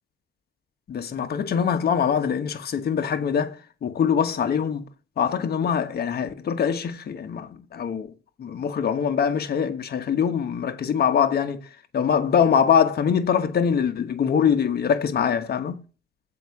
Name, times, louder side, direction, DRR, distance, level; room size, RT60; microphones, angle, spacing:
voice 1, 0.9-3.6 3.8-4.9 5.2-8.1 8.4-11.6 11.9-15.8, left 7 dB, 55° left, 1.2 m, -23 dB
7.8 x 4.7 x 6.5 m
cardioid pair, 85°, 20 cm